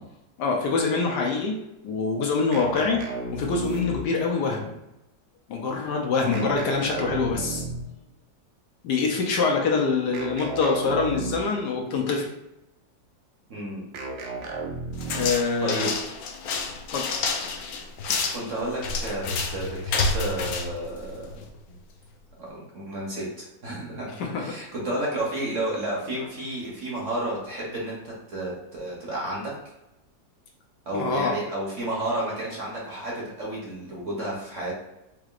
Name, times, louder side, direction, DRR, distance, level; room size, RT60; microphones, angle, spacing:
voice 1, 0.4-1.6 1.8-3.0 3.3-4.8 5.5-7.6 8.8-12.3 15.1-15.9 16.9-17.1 24.2-24.4 30.9-31.4, left 4 dB, 70° left, 0 dB, 1.2 m, -25 dB
sound 1, 2.5-4.3 6.3-8.0 10.1-11.7 13.9-15.5, right 2 dB, 90° right, 0.6 m, -34 dB
voice 2, 6.2-6.5 13.5-13.8 15.6-15.9 18.3-21.8 22.4-29.6 30.9-34.7, right 1 dB, 50° right, -4 dB, 1.1 m, -32 dB
sound 2, 15.0-21.6, left 4 dB, 85° left, 0.7 m, -29 dB
4.7 x 3.0 x 2.4 m, 0.92 s
omnidirectional pair, 2.0 m